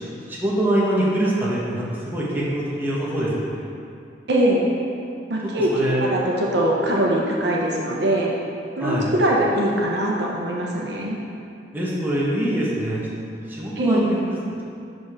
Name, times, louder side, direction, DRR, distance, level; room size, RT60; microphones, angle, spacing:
voice 1, 0.0-3.7 5.7-6.0 8.8-9.1 11.7-14.2, right 1 dB, 10° right, -6 dB, 1.0 m, -24 dB
voice 2, 4.3-4.6 5.3-5.7 6.0-6.2 6.5-8.3 8.8-11.2 13.8-14.0, right 1 dB, 65° right, -3 dB, 1.0 m, -22 dB
5.9 x 5.3 x 4.8 m, 2.6 s
head